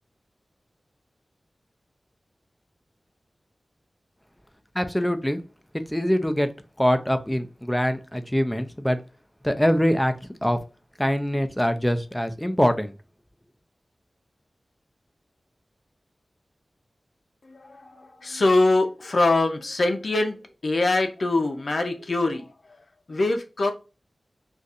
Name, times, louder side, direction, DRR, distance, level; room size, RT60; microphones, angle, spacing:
voice 1, 4.7-5.4 5.9-6.5 6.8-9.0 9.4-10.6 11.0-13.0, equal, 5° left, 0.5 m, -23 dB
voice 2, 17.5-20.4 20.6-22.5 23.1-23.7, left 2 dB, 65° left, 0.6 m, -23 dB
2.6 x 2.4 x 4.0 m
wide cardioid pair, 60°, 0 cm